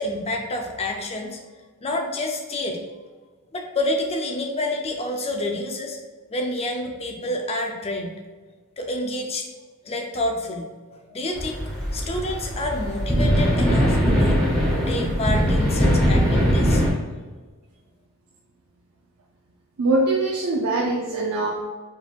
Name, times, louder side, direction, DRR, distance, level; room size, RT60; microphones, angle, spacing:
voice 1, 0.0-1.5 1.8-2.8 3.5-6.0 6.3-8.1 8.8-9.5 9.8-11.6 11.9-14.4 14.7-16.8, left 1 dB, 30° left, 3 dB, 0.5 m, -28 dB
sound 1, 11.3-16.9, equal, 5° left, 0.9 m, -21 dB
voice 2, 19.8-21.6, right 2 dB, 80° right, -2 dB, 0.5 m, -22 dB
4.2 x 3.6 x 2.4 m, 1.3 s
head